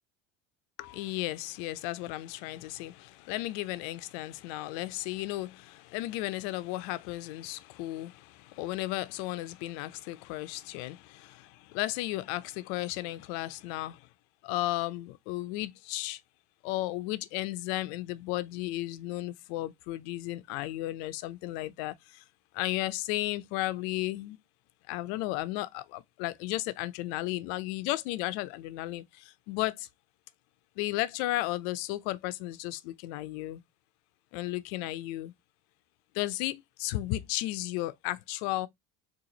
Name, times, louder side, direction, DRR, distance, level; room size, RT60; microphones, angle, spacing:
voice 1, 0.8-14.0 14.4-16.2 16.6-21.9 22.5-24.4 24.9-29.0 29.5-29.9 30.8-33.6 34.3-35.3 36.1-38.7, left 17 dB, 75° left, 0.5 m, -34 dB
4.0 x 2.5 x 2.8 m
supercardioid pair, 90°, 33 cm